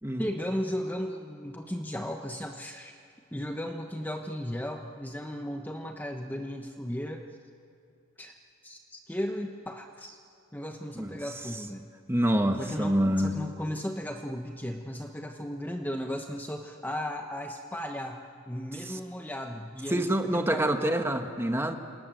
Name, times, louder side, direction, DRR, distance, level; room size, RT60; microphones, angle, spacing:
voice 1, 0.2-3.0 3.3-7.3 8.2-8.3 8.6-10.2 10.5-11.9 12.6-18.2 18.5-21.0, equal, 10° left, 3 dB, 1.1 m, -36 dB
voice 2, 12.1-13.3 18.9-19.0 19.9-21.8, right 1 dB, 10° right, 5 dB, 1.5 m, -26 dB
27.5 x 27.5 x 7.7 m, 2.4 s
head